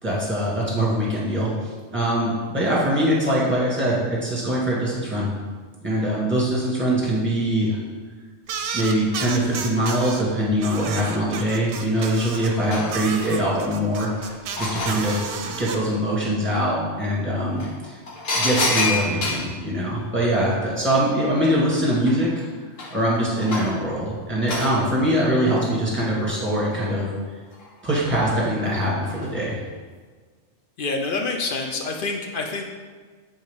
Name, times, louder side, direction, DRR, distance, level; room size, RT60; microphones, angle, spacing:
voice 1, 0.0-1.5 1.9-5.3 5.8-7.8 8.7-14.1 14.6-18.0 18.3-22.3 22.9-27.1 27.8-29.6, right 1 dB, 10° right, -6 dB, 1.6 m, -23 dB
sound 1, 8.5-10.2 10.6-12.5 12.9-15.8, right 6 dB, 70° right, 0.8 m, -32 dB
sound 2, 11.9-12.0 12.4-13.6 14.1-15.3 17.0-17.1 17.6-19.5 21.1-21.2 21.5-23.8 24.5-24.7 26.3-27.0 27.5-28.1 29.0-29.3 29.7-29.8, left 2 dB, 75° left, 1.4 m, -28 dB
voice 2, 30.8-32.6, left 3 dB, 55° left, 2 dB, 0.7 m, -27 dB
7.1 x 4.0 x 3.4 m, 1.5 s
omnidirectional pair, 1.3 m